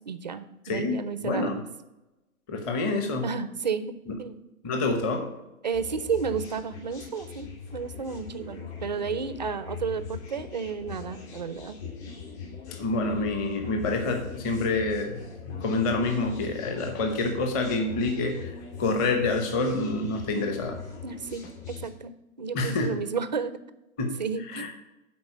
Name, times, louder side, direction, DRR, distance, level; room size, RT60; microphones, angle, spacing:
voice 1, 0.0-1.6 3.2-3.9 4.2-4.4 5.6-11.8 21.0-21.5 21.8-22.1 22.4-23.6 24.2-24.7, right 6 dB, 35° right, 12 dB, 0.4 m, -32 dB
voice 2, 0.6-1.0 1.2-1.6 2.5-3.3 4.1-4.2 4.6-5.3 12.7-15.2 15.6-20.8 22.5-23.0 24.0-24.1 24.5-24.7, left 3 dB, 20° left, 5 dB, 0.9 m, -27 dB
sound 1, 5.7-21.9, left 6 dB, 50° left, 2.7 m, -41 dB
9.8 x 4.0 x 6.5 m, 0.98 s
hypercardioid pair, 140°, 42 cm